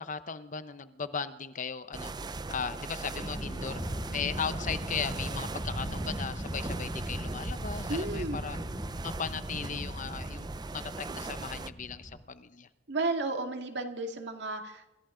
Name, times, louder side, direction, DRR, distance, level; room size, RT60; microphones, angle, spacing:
voice 1, 0.0-2.2 2.5-8.6 9.0-12.7, left 6 dB, 45° left, 12 dB, 0.8 m, -37 dB
sound 1, 1.9-11.7, right 3 dB, 25° right, 0.5 m, -39 dB
sound 2, 3.2-12.2, equal, 25° left, 6.4 m, -39 dB
voice 2, 7.9-8.4 12.9-14.9, right 2 dB, 70° right, 4 dB, 2.1 m, -33 dB
26.5 x 14.0 x 3.8 m, 0.95 s
head